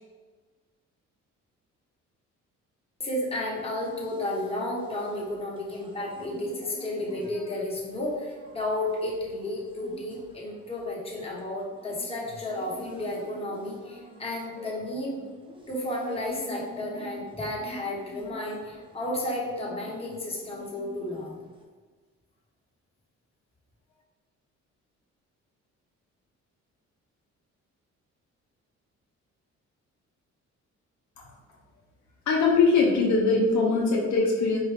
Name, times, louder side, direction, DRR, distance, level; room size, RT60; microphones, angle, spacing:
voice 1, 3.0-15.2 15.7-21.4, left 1 dB, 20° left, -4 dB, 1.2 m, -32 dB
sound 1, 3.5-21.6, equal, 15° right, 0.7 m, -48 dB
voice 2, 32.3-34.6, left 4 dB, 70° left, -2 dB, 0.7 m, -22 dB
4.5 x 2.4 x 3.4 m, 1.4 s
cardioid pair, 90°, 30 cm